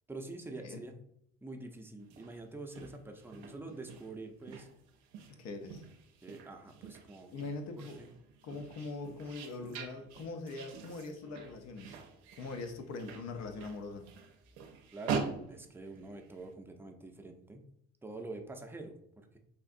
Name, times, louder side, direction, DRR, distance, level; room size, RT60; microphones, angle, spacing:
voice 1, 0.1-1.0 1.4-4.7 6.2-7.4 8.0-8.1 14.9-17.7 18.0-19.4, right 2 dB, 5° right, 4 dB, 0.5 m, -46 dB
sound 1, 2.0-16.5, right 5 dB, 85° right, 0.5 m, -44 dB
voice 2, 5.3-5.8 7.3-8.0 8.4-12.0 12.4-14.1, left 3 dB, 55° left, 6 dB, 0.6 m, -42 dB
3.5 x 2.5 x 2.4 m, 0.70 s
hypercardioid pair, 55°, 32 cm